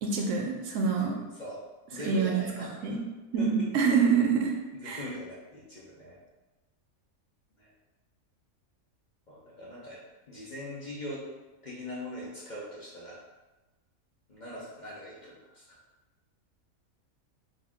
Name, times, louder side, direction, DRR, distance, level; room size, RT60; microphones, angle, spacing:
voice 1, 0.0-1.2 2.1-2.4 2.8-3.0 3.3-4.5 4.8-5.0, right 5 dB, 70° right, 1 dB, 0.9 m, -26 dB
voice 2, 1.0-1.6 1.9-3.0 3.4-3.7 4.7-6.2 7.6-7.7 9.3-10.0 10.3-11.2 11.6-13.2 14.3-15.8, left 1 dB, 40° left, -7 dB, 0.7 m, -41 dB
3.8 x 2.6 x 3.5 m, 1.1 s
omnidirectional pair, 1.5 m